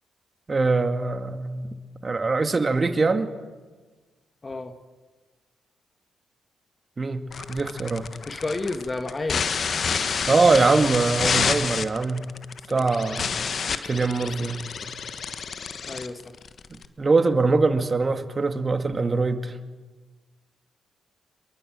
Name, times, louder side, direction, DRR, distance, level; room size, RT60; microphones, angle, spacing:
voice 1, 0.5-1.7 2.0-3.3 7.0-8.1 10.3-12.3 12.7-13.3 13.8-14.6 17.0-19.6, right 3 dB, 40° right, 8 dB, 2.2 m, -22 dB
voice 2, 4.4-4.8 8.3-9.5 12.7-12.9 15.9-16.3, left 2 dB, 35° left, 8 dB, 1.9 m, -31 dB
sound 1, 7.3-16.8, left 6 dB, 55° left, 1.4 m, -29 dB
24.5 x 23.0 x 7.8 m, 1.4 s
hypercardioid pair, 40°, 0 cm